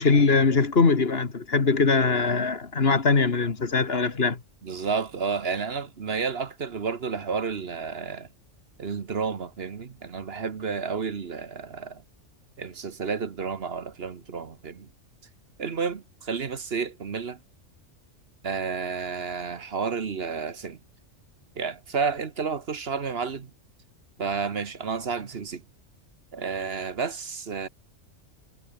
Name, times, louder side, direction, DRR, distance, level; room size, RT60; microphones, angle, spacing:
voice 1, 0.0-4.4, left 4 dB, 55° left, 2.1 m, -22 dB
voice 2, 4.6-8.3 8.8-12.0 12.6-14.9 15.6-17.4 18.4-20.8 21.6-23.5 24.2-25.6 26.3-27.7, right 5 dB, 55° right, 1.4 m, -31 dB
omnidirectional pair, 1.2 m